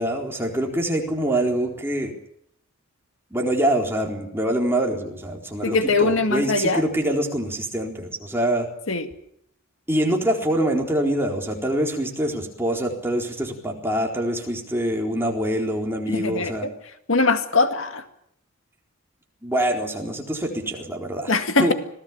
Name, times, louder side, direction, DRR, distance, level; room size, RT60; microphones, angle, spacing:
voice 1, 0.0-2.1 3.3-8.7 9.9-16.7 19.4-21.3 21.6-21.7, right 1 dB, 10° right, 0 dB, 4.1 m, -25 dB
voice 2, 5.6-6.8 8.9-9.1 16.1-16.7 17.1-18.0 21.3-21.7, left 3 dB, 70° left, 7 dB, 2.1 m, -21 dB
26.0 x 18.5 x 7.3 m, 0.72 s
head